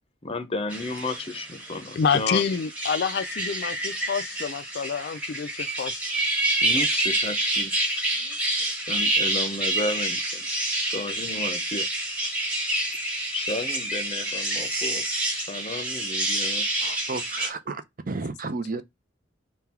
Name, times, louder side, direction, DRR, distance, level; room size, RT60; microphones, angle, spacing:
voice 1, 0.2-2.4 6.6-7.7 8.9-10.5 10.8-11.9 13.3-15.0 15.5-16.6, left 2 dB, 30° left, 0.7 m, -32 dB
sound 1, 0.7-17.5, right 1 dB, 5° right, 1.2 m, -28 dB
voice 2, 2.0-6.0, left 6 dB, 60° left, 0.3 m, -27 dB
voice 3, 16.8-18.8, right 3 dB, 45° right, 0.6 m, -33 dB
3.8 x 2.3 x 4.3 m
head